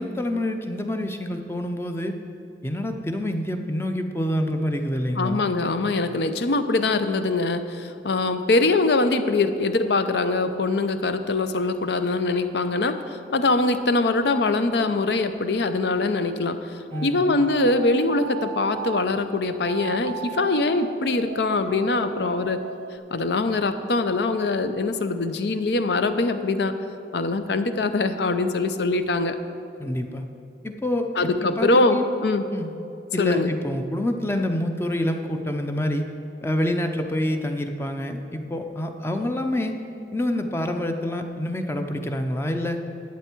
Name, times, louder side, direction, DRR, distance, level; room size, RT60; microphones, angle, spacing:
voice 1, 0.0-2.1 2.6-5.4 16.9-17.2 29.8-30.2 30.6-31.1 31.4-32.0 32.5-32.7 33.1-36.1 36.4-39.8 40.1-42.8, left 1 dB, 15° left, 5 dB, 0.5 m, -27 dB
voice 2, 5.2-16.6 17.0-22.6 23.1-26.7 27.1-29.4 31.2-32.4 33.2-33.5, left 3 dB, 70° left, 10 dB, 0.6 m, -23 dB
sound 1, 16.9-19.1 19.6-23.0, right 7 dB, 70° right, 0.4 m, -36 dB
11.5 x 8.2 x 4.5 m, 2.8 s
head